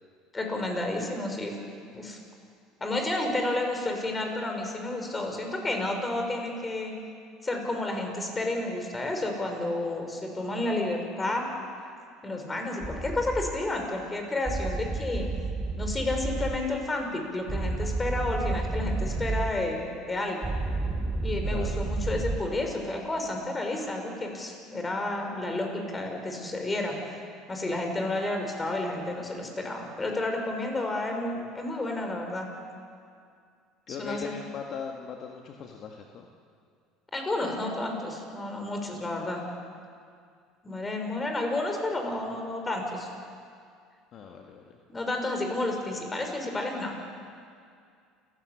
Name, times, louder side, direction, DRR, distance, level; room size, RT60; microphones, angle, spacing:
voice 1, 0.3-1.6 1.9-2.2 2.8-6.9 7.4-11.5 12.2-15.3 15.8-20.5 21.2-27.2 27.5-32.5 33.9-34.3 37.1-39.4 40.6-43.1 44.9-47.0, left 2 dB, 20° left, 3 dB, 5.7 m, -31 dB
sound 1, 12.8-13.5 14.5-16.6 17.5-19.5 20.4-22.4, right 3 dB, 15° right, 3.5 m, -30 dB
voice 2, 33.9-36.3 44.1-44.7, left 6 dB, 50° left, 2 dB, 1.8 m, -39 dB
28.5 x 15.0 x 8.5 m, 2.3 s
hypercardioid pair, 70°, 0 cm